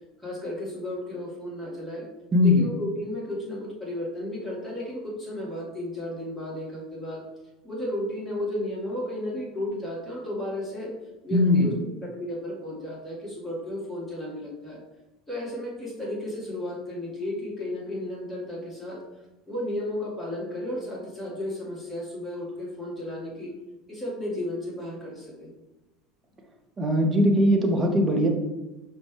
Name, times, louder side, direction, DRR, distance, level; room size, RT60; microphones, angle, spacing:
voice 1, 0.2-2.1 2.4-7.2 7.6-10.9 11.2-14.8 15.3-19.0 19.5-23.5 23.9-25.5, left 1 dB, 5° left, -5 dB, 1.4 m, -33 dB
voice 2, 2.3-2.6 11.3-11.7 26.8-28.3, left 1 dB, 30° right, 3 dB, 0.7 m, -20 dB
5.1 x 2.2 x 3.1 m, 1.1 s
figure-of-eight pair, 70°, 0 cm